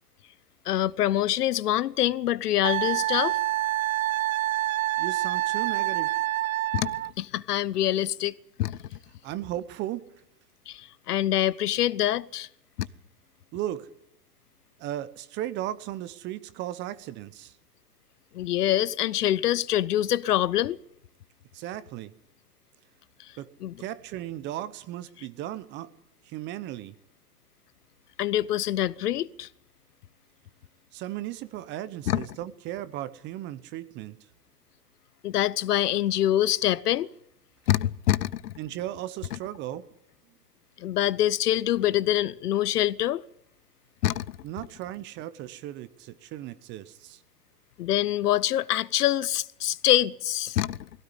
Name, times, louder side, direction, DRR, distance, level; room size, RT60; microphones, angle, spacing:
voice 1, 0.7-3.4 6.7-8.3 8.6-8.8 10.7-12.5 12.8-12.9 18.3-20.8 23.2-23.3 23.6-23.7 28.2-29.5 32.1-32.3 35.2-37.1 37.7-38.5 39.3-39.4 40.8-43.2 44.0-44.4 47.8-50.9, left 13 dB, 65° left, 0.9 m, -25 dB
Wind instrument woodwind instrument, 2.6-7.1, right 16 dB, 55° right, 0.8 m, -27 dB
voice 2, 5.0-6.2 9.2-10.0 13.5-13.9 14.8-17.5 21.5-22.1 23.4-23.5 23.8-25.9 26.3-26.9 30.9-34.2 38.6-39.9 44.4-47.2, right 13 dB, 20° right, 0.8 m, -36 dB
19.0 x 16.5 x 9.9 m
hypercardioid pair, 130°, 50 cm